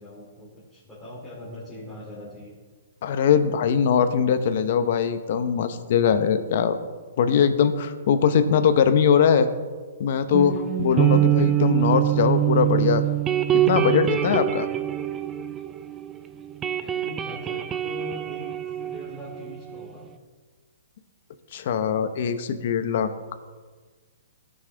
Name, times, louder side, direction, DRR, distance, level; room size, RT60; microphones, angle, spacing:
voice 1, 0.0-2.5 16.8-20.1, left 1 dB, 5° left, -10 dB, 2.8 m, -41 dB
voice 2, 3.0-6.8 7.2-9.5 10.0-13.1 13.5-14.7 21.5-23.3, left 7 dB, 55° left, 10 dB, 0.9 m, -21 dB
sound 1, 10.3-16.1 16.4-19.9, right 13 dB, 15° right, 0.4 m, -24 dB
17.0 x 6.3 x 3.4 m, 1.4 s
hypercardioid pair, 155°, 0 cm